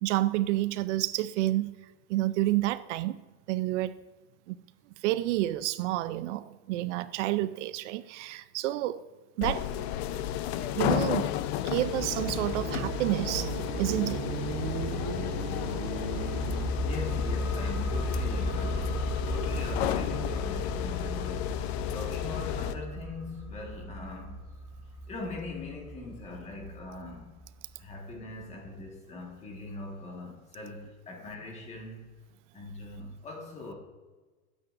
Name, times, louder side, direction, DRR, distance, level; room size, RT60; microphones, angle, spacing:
voice 1, 0.0-1.7 2.1-3.2 3.5-4.0 4.5-4.6 5.0-9.0 9.4-9.7 10.7-11.3 11.6-13.5 13.8-14.2, right 15 dB, 80° right, 0.6 m, -29 dB
sound 1, 9.4-22.7, left 11 dB, 60° left, 0.7 m, -33 dB
sound 2, 11.7-16.7, right 6 dB, 40° right, 1.1 m, -36 dB
sound 3, 16.1-27.5 27.8-27.9, equal, 5° right, 0.8 m, -35 dB
voice 2, 16.8-19.0 19.3-21.5 21.9-24.4 25.1-27.3 27.8-32.1 32.5-33.7, left 2 dB, 20° left, 1.6 m, -41 dB
20.5 x 8.7 x 2.6 m
supercardioid pair, 175°, 35 cm